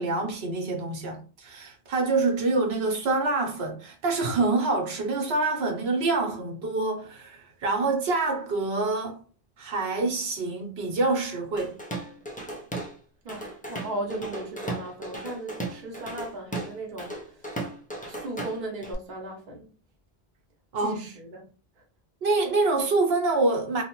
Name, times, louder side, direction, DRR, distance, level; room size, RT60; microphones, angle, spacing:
voice 1, 0.0-9.2 9.6-11.7 20.7-21.1 22.2-23.8, right 3 dB, 80° right, 1.0 m, -26 dB
Drum kit / Drum, 11.6-13.0 13.3-18.9, right 1 dB, 15° left, 0.3 m, -36 dB
voice 2, 13.2-17.4 18.1-19.7 20.8-21.4, right 2 dB, 55° right, 0.8 m, -37 dB
2.9 x 2.1 x 2.9 m
omnidirectional pair, 1.0 m